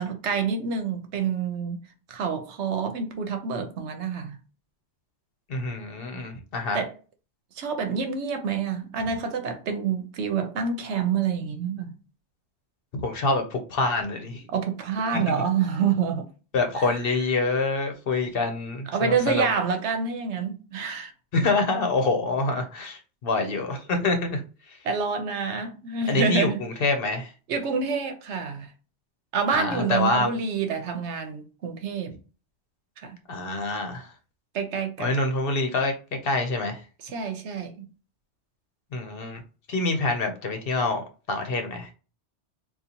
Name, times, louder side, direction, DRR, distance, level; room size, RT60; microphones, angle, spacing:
voice 1, 0.0-1.8 2.1-4.4 6.7-6.9 7.6-11.9 14.5-16.3 16.8-16.9 18.9-21.1 24.8-26.6 27.5-28.7 29.3-32.2 33.0-33.2 34.5-35.2 37.0-37.9, right 6 dB, 75° right, 1.0 m, -27 dB
voice 2, 5.5-6.8 12.9-14.4 15.1-15.4 16.5-19.5 21.3-24.8 26.1-27.3 29.5-30.3 33.3-34.1 35.0-35.9 36.2-36.8 38.9-39.4 39.7-41.9, left 3 dB, 55° left, 0.9 m, -26 dB
3.9 x 2.4 x 2.8 m
omnidirectional pair, 1.2 m